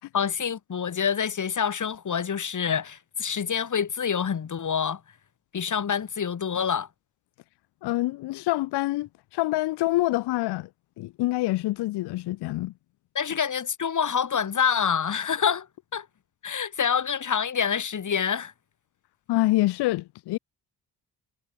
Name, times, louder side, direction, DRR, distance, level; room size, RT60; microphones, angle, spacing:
voice 1, 0.1-5.0 5.5-6.9 13.2-15.7 15.9-16.1 16.4-18.5, left 7 dB, 40° left, 2.0 m, -26 dB
voice 2, 7.8-10.7 11.0-12.7 19.3-20.4, left 18 dB, 60° left, 0.7 m, -26 dB
hypercardioid pair, 45°, 47 cm